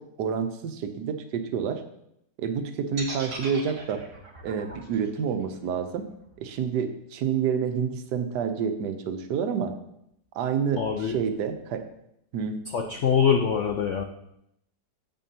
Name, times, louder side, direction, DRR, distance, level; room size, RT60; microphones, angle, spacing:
voice 1, 0.0-1.8 2.4-4.0 4.4-6.1 6.4-9.7 10.3-11.8 12.3-12.6, right 7 dB, 70° right, 8 dB, 1.3 m, -28 dB
sound 1, 3.0-7.0, right 2 dB, 35° right, 1.5 m, -40 dB
voice 2, 10.8-11.2 12.7-14.0, left 7 dB, 75° left, 4 dB, 0.6 m, -24 dB
9.0 x 8.3 x 2.8 m, 0.78 s
omnidirectional pair, 2.0 m